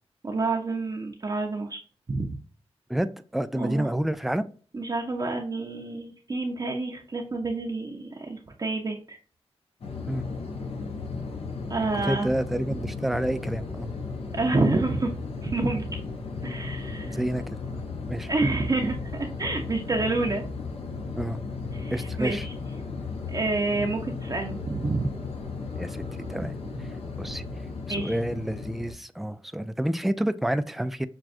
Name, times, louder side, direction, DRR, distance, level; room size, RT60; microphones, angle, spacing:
voice 1, 0.2-1.8 2.1-2.3 3.5-3.9 4.7-9.2 11.7-12.3 14.3-15.1 15.4-15.9 16.4-17.2 18.3-20.4 21.7-22.5 23.3-25.2 26.3-26.4 27.9-28.2, right 3 dB, 35° right, 0 dB, 0.7 m, -28 dB
voice 2, 2.9-4.4 10.0-10.2 12.0-13.9 17.0-17.8 18.1-18.3 21.2-21.4 21.9-22.5 25.8-26.0 26.3-26.5 26.8-26.9 27.2-27.4 28.0-31.1, right 1 dB, ahead, 12 dB, 0.3 m, -29 dB
sound 1, 9.8-28.9, left 4 dB, 65° left, 1.0 m, -35 dB
6.0 x 2.3 x 2.5 m, 0.40 s
wide cardioid pair, 95°, 11 cm